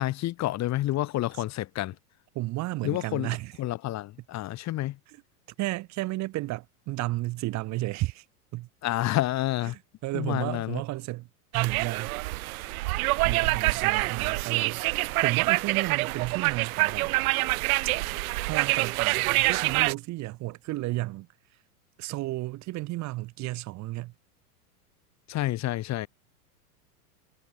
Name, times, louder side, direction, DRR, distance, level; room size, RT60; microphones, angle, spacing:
voice 1, 0.0-1.9 2.8-5.0 8.8-9.8 10.1-10.8 25.3-26.1, left 15 dB, 35° left, 2.1 m, -29 dB
voice 2, 2.3-3.5 5.6-8.2 8.5-8.7 9.7-11.3 11.5-12.1 13.2-17.1 18.4-21.3 22.0-24.1, right 19 dB, 35° right, 1.3 m, -32 dB
sound 1, 11.5-19.9, right 21 dB, 65° right, 0.6 m, -26 dB
hypercardioid pair, 120°, 46 cm